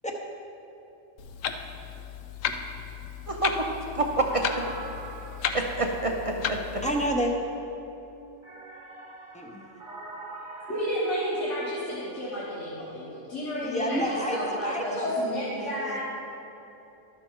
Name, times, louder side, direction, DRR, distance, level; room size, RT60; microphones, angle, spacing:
Clock, 1.2-7.1, left 7 dB, 80° left, 0.9 m, -34 dB
voice 1, 3.3-3.7 3.9-4.5 5.5-6.8, right 2 dB, 55° right, 2 dB, 0.3 m, -27 dB
sound 1, 4.3-7.1 8.4-12.3 13.9-15.3, right 3 dB, 40° right, 1.2 m, -44 dB
voice 2, 6.8-7.3 9.3-9.6 13.6-16.0, equal, 10° left, 1 dB, 0.6 m, -29 dB
voice 3, 10.7-16.0, equal, 65° left, -9 dB, 1.8 m, -32 dB
12.0 x 6.2 x 4.5 m, 2.9 s
omnidirectional pair, 1.4 m